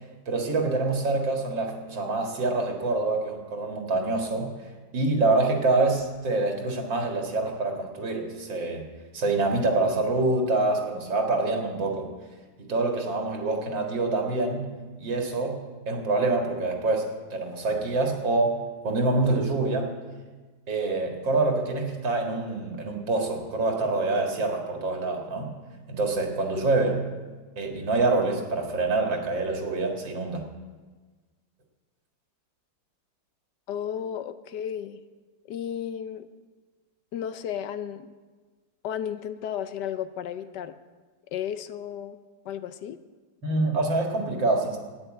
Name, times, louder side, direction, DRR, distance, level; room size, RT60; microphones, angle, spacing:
voice 1, 0.3-4.5 4.9-8.8 9.1-12.1 12.6-14.7 15.0-20.0 20.7-25.5 25.9-27.0 27.6-30.4 43.4-44.8, right 2 dB, 80° right, 2 dB, 2.7 m, -26 dB
voice 2, 33.7-35.0 35.5-36.3 37.1-38.1 38.8-40.8 41.3-42.2 42.4-43.0, left 9 dB, 70° left, 11 dB, 1.2 m, -33 dB
11.5 x 9.8 x 8.8 m, 1.4 s
omnidirectional pair, 2.0 m